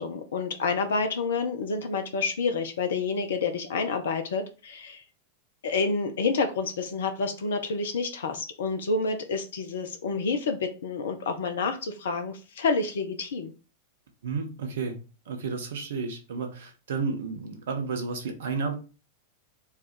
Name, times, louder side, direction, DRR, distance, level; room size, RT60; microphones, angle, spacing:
voice 1, 0.0-5.0 5.6-13.5, left 4 dB, 65° left, 7 dB, 0.5 m, -29 dB
voice 2, 14.2-15.0 15.3-18.7, right 4 dB, 60° right, 5 dB, 1.0 m, -32 dB
4.7 x 2.3 x 4.3 m, 0.34 s
figure-of-eight pair, 90°, 0 cm